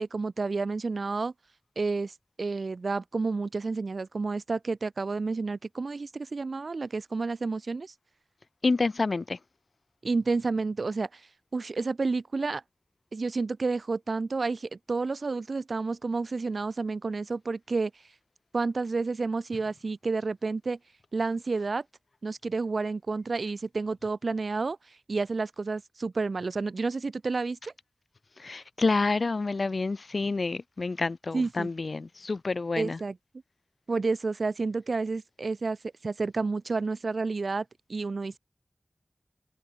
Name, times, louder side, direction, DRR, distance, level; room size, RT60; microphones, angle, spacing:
voice 1, 0.0-1.3 1.7-7.9 10.0-12.6 13.1-17.9 18.5-20.8 21.1-21.8 22.2-27.7 31.3-31.7 32.8-33.1 33.9-35.8 36.0-38.4, right 3 dB, 85° right, 5.1 m, -30 dB
voice 2, 8.6-9.4 28.4-33.0, left 3 dB, 75° left, 5.8 m, -28 dB
wide cardioid pair, 40°, 0 cm